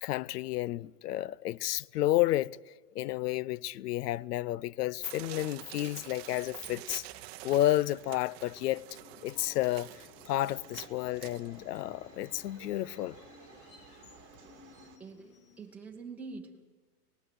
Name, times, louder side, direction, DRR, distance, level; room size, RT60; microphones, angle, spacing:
voice 1, 0.0-2.6 2.9-7.0 7.4-8.8 9.2-13.2, left 15 dB, 80° left, 0.6 m, -31 dB
sound 1, 5.0-11.8 12.3-12.4 12.6-12.7 13.3-13.5 13.9-14.0 14.3-14.4, right 16 dB, 40° right, 0.8 m, -48 dB
sound 2, 5.8-15.0, right 9 dB, 25° right, 2.2 m, -59 dB
Subway metro underground, 8.3-16.0, left 4 dB, 30° left, 2.0 m, -56 dB
voice 2, 15.0-16.6, right 4 dB, 5° right, 1.6 m, -46 dB
25.5 x 18.5 x 7.9 m
supercardioid pair, 160°, 46 cm